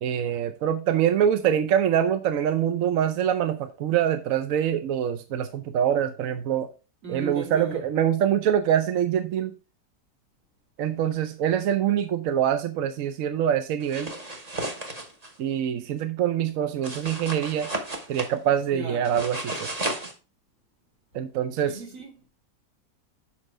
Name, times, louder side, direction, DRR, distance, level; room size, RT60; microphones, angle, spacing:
voice 1, 0.0-6.7 7.1-9.5 10.8-14.1 15.4-17.7 18.1-19.7 21.1-21.8, right 9 dB, 65° right, 0.9 m, -24 dB
voice 2, 7.0-7.8 18.7-19.1 21.6-22.2, right 3 dB, 45° right, 2.8 m, -37 dB
sound 1, 13.8-15.3 16.8-18.3 19.0-20.1, right 1 dB, 25° right, 1.1 m, -33 dB
7.3 x 4.8 x 4.6 m
omnidirectional pair, 1.9 m